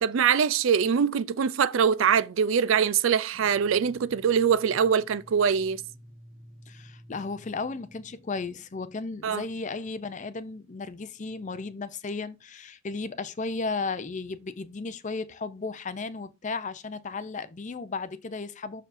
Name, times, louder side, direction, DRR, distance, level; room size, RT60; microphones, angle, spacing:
voice 1, 0.0-5.8 9.2-9.4, right 7 dB, 70° right, 0.4 m, -23 dB
sound 1, 3.3-11.7, right 1 dB, 35° right, 1.0 m, -54 dB
voice 2, 6.7-18.8, left 4 dB, 35° left, 0.5 m, -34 dB
6.6 x 6.3 x 2.6 m
head